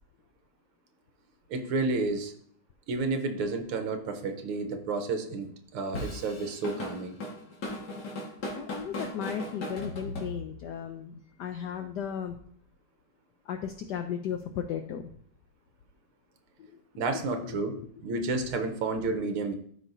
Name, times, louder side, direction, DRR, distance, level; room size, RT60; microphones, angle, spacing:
voice 1, 1.5-2.3 2.9-7.2 17.0-19.5, right 3 dB, 80° right, 6 dB, 1.8 m, -31 dB
Drum kit / Drum, 5.9-10.8, left 1 dB, 50° left, 2.2 m, -37 dB
voice 2, 8.5-12.4 13.4-15.1 16.6-17.9, left 8 dB, 75° left, 6 dB, 0.9 m, -36 dB
13.0 x 5.3 x 2.7 m, 0.63 s
omnidirectional pair, 2.4 m